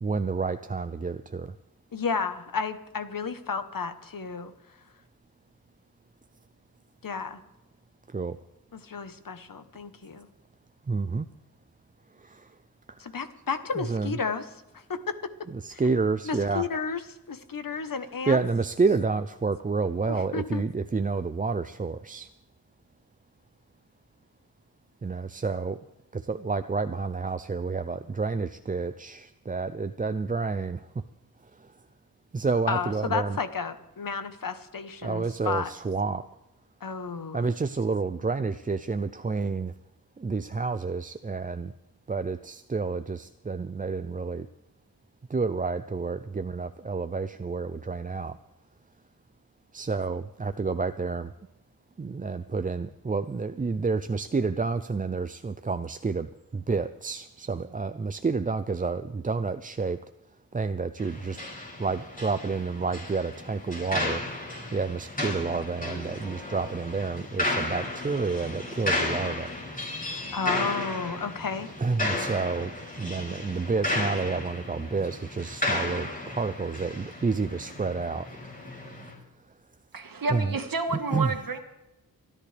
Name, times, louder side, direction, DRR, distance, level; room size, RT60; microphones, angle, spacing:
voice 1, 0.0-1.5 8.1-8.4 10.9-11.3 12.2-12.5 13.8-14.1 15.6-16.7 18.3-22.3 25.0-25.8 26.1-30.8 32.3-33.4 35.0-36.2 37.3-39.7 40.2-41.7 42.1-44.5 45.3-48.4 49.7-51.3 52.0-60.0 60.5-61.4 61.8-64.2 64.7-69.5 71.8-72.7 73.0-78.3 80.3-80.5 81.1-81.3, right 4 dB, 25° right, 10 dB, 0.4 m, -29 dB
voice 2, 1.9-4.5 7.0-7.4 8.7-10.3 13.0-14.5 14.7-15.3 15.7-15.8 16.2-17.0 17.3-18.4 20.0-20.6 32.7-35.7 36.8-37.5 70.3-71.7, left 5 dB, 60° left, 10 dB, 1.1 m, -32 dB
sound 1, 61.0-79.1, left 2 dB, 20° left, 4.6 m, -34 dB
voice 3, 79.9-81.6, right 3 dB, 65° right, 6 dB, 1.8 m, -30 dB
29.5 x 11.0 x 3.4 m, 0.95 s
wide cardioid pair, 100°, 37 cm